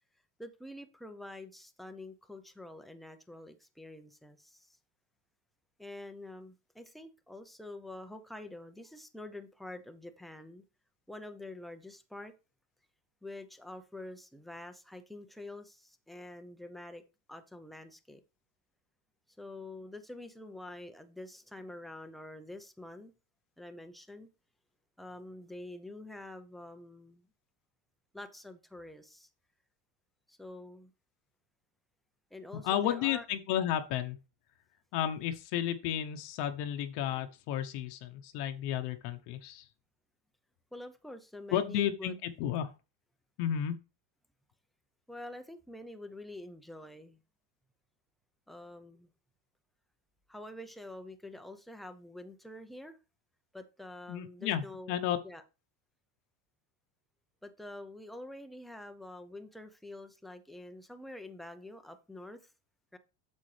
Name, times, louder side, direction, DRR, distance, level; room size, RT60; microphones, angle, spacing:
voice 1, 0.4-4.8 5.8-10.6 11.1-12.3 13.2-17.0 17.3-18.2 19.4-23.1 23.6-24.3 25.0-27.3 28.1-29.3 30.3-30.9 32.3-33.2 40.7-42.2 45.1-47.2 48.5-49.1 50.3-53.0 53.5-54.9 55.2-55.4 57.4-62.5 62.9-63.0, left 1 dB, ahead, 0.5 m, -47 dB
voice 2, 32.6-34.2 34.9-39.7 41.5-42.7 43.4-43.8 54.1-55.2, left 10 dB, 55° left, 1.0 m, -32 dB
8.5 x 7.2 x 3.3 m
supercardioid pair, 140°, 48 cm